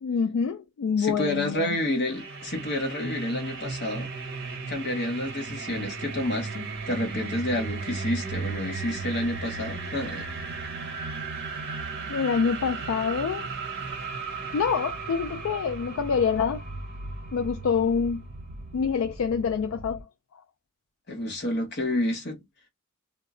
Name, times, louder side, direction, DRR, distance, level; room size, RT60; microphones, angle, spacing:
voice 1, 0.0-1.8 12.1-13.5 14.5-16.6 17.3-18.3 18.7-20.1, left 6 dB, 70° left, 0.3 m, -26 dB
voice 2, 1.0-4.1 4.7-10.3 21.1-22.4, left 1 dB, 50° left, 1.0 m, -29 dB
sound 1, 2.1-20.0, right 4 dB, 50° right, 0.8 m, -36 dB
2.2 x 2.1 x 3.6 m
head